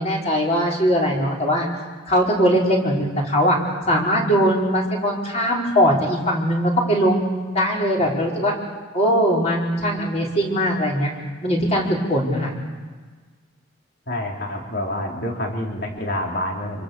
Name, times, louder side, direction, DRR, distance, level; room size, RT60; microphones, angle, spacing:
voice 1, 0.0-1.7 2.1-3.6 3.9-8.5 8.9-11.1 11.4-12.5, equal, 35° left, -2 dB, 5.1 m, -20 dB
voice 2, 14.1-16.8, left 1 dB, 55° left, 0 dB, 3.8 m, -27 dB
26.5 x 24.5 x 6.9 m, 1.4 s
head